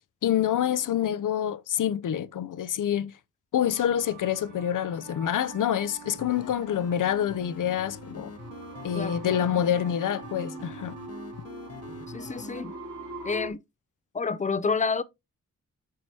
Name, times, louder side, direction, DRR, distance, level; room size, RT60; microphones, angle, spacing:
voice 1, 0.2-3.1 3.5-8.3 8.8-11.0, left 10 dB, 85° left, 0.5 m, -27 dB
sound 1, 3.6-13.5, right 4 dB, 80° right, 2.0 m, -43 dB
sound 2, 6.1-12.6, left 7 dB, 50° left, 0.7 m, -45 dB
voice 2, 8.9-9.4 12.1-12.7 13.2-13.6 14.1-15.0, left 4 dB, 25° left, 0.4 m, -29 dB
7.5 x 4.6 x 2.7 m
wide cardioid pair, 155°, 31 cm